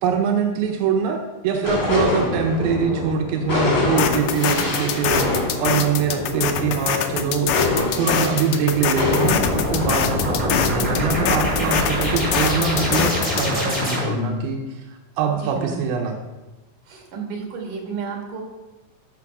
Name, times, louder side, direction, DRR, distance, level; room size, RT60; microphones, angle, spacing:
voice 1, 0.0-7.7 8.0-14.8 15.2-16.2, right 6 dB, 90° right, 2 dB, 2.7 m, -23 dB
sound 1, 1.6-11.5, left 3 dB, 30° left, 2.7 m, -25 dB
sound 2, 4.0-13.5, left 9 dB, 75° left, 2.0 m, -24 dB
sound 3, 9.2-14.4, left 1 dB, 15° right, 3.8 m, -24 dB
voice 2, 15.3-15.8 16.9-18.4, right 5 dB, 65° right, 0 dB, 3.2 m, -32 dB
13.0 x 5.6 x 4.7 m, 1.1 s
omnidirectional pair, 4.1 m